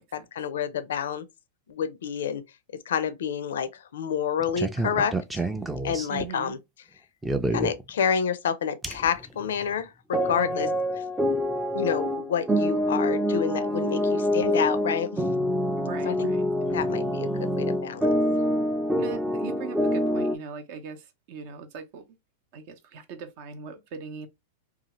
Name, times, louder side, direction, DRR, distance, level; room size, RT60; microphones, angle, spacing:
voice 1, 0.1-1.2 1.7-2.4 2.9-5.4 5.8-6.6 7.5-10.7 11.7-15.2 16.0-16.3 16.7-17.3 17.6-18.1, left 7 dB, 80° left, 0.4 m, -28 dB
sound 1, 4.4-6.3 7.2-7.8 8.8-9.1 9.4-9.6 10.1-20.4, equal, 10° right, 0.4 m, -26 dB
voice 2, 6.1-6.5 10.4-10.8 15.8-16.5 19.0-22.0 22.5-24.3, right 6 dB, 55° right, 0.7 m, -40 dB
2.7 x 2.3 x 3.0 m
hypercardioid pair, 120°, 0 cm